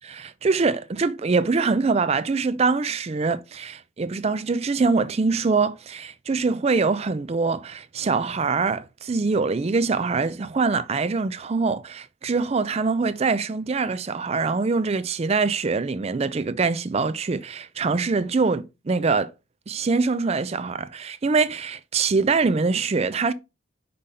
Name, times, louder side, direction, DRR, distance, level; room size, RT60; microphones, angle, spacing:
voice 1, 0.0-19.3 19.7-23.3, right 4 dB, 30° right, 0.4 m, -24 dB
5.3 x 3.4 x 5.6 m
head